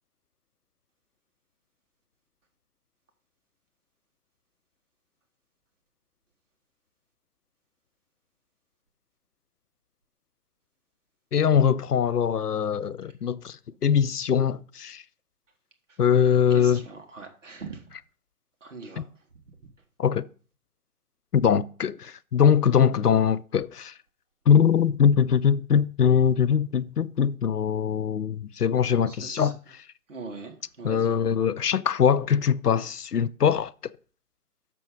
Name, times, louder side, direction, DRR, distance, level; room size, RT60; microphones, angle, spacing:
voice 1, 11.3-13.6 13.8-15.0 16.0-16.8 19.0-19.1 20.0-20.3 21.3-23.9 24.5-29.6 30.8-33.7, left 8 dB, 80° left, 0.6 m, -22 dB
voice 2, 16.5-17.9 18.6-19.0 29.1-29.5 30.1-31.2, right 4 dB, 55° right, 1.4 m, -41 dB
6.8 x 6.0 x 5.1 m
figure-of-eight pair, 155°, 46 cm